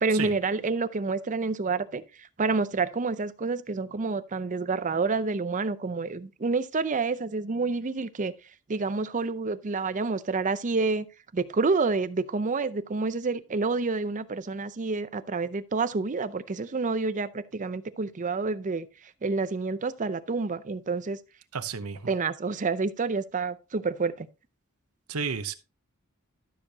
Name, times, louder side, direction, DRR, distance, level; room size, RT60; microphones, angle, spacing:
voice 1, 0.0-2.0 2.4-8.3 8.7-11.1 11.3-18.9 19.2-21.2 22.1-24.3, right 4 dB, 35° right, 0.5 m, -28 dB
voice 2, 21.5-22.1 25.1-25.6, right 5 dB, 90° right, 0.8 m, -32 dB
12.5 x 6.6 x 2.8 m
head